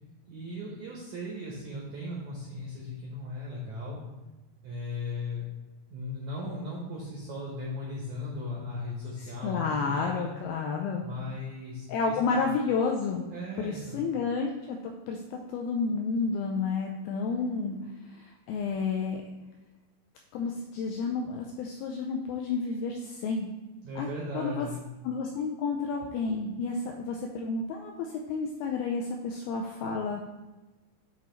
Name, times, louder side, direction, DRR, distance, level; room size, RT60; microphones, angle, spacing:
voice 1, 0.3-4.0 4.6-5.5 5.9-10.3 11.0-12.5 13.3-14.0 23.8-24.8, left 2 dB, 80° right, -4 dB, 1.6 m, -37 dB
voice 2, 9.4-11.0 11.9-13.3 13.6-17.8 18.1-19.2 20.3-23.5 24.0-24.1 24.3-24.7 25.0-30.2, left 4 dB, 85° left, 1 dB, 2.1 m, -31 dB
8.3 x 3.0 x 4.3 m, 1.1 s
omnidirectional pair, 4.7 m